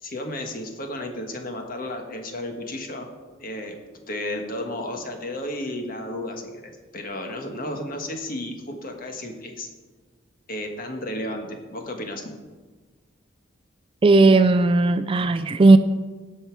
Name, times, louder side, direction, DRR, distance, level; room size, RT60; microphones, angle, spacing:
voice 1, 0.0-3.1 3.4-3.8 4.1-9.7 10.5-12.3, left 1 dB, 45° left, 1.4 m, -33 dB
voice 2, 14.0-15.8, right 3 dB, 25° right, 0.3 m, -16 dB
17.0 x 5.6 x 4.7 m
head